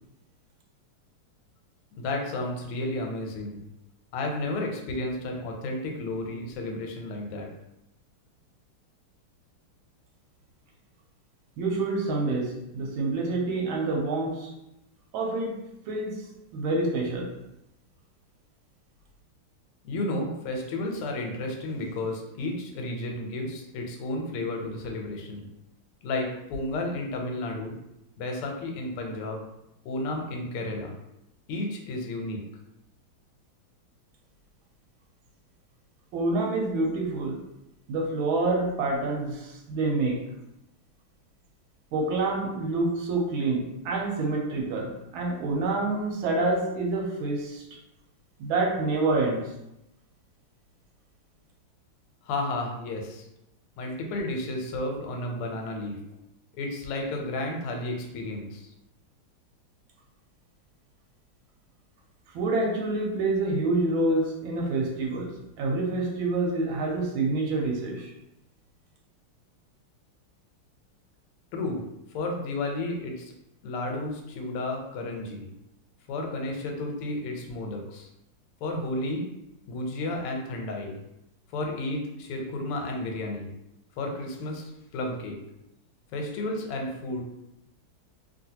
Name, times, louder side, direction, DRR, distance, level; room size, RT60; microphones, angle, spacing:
voice 1, 1.9-3.6 4.1-7.5 19.8-25.5 26.0-27.8 28.2-29.4 29.8-30.9 31.5-32.4 52.2-53.2 53.8-56.0 56.5-58.7 71.5-71.8 72.1-73.3 73.6-75.5 76.1-78.1 78.6-79.3 79.7-81.0 81.5-83.5 84.0-85.4 86.1-87.2, left 2 dB, 90° left, 2 dB, 1.5 m, -32 dB
voice 2, 11.6-14.5 15.1-16.2 16.5-17.4 36.1-37.4 37.9-40.2 41.9-47.6 48.4-49.5 62.3-68.1, right 2 dB, 75° right, 0 dB, 1.3 m, -27 dB
3.0 x 2.8 x 2.7 m, 0.86 s
omnidirectional pair, 2.4 m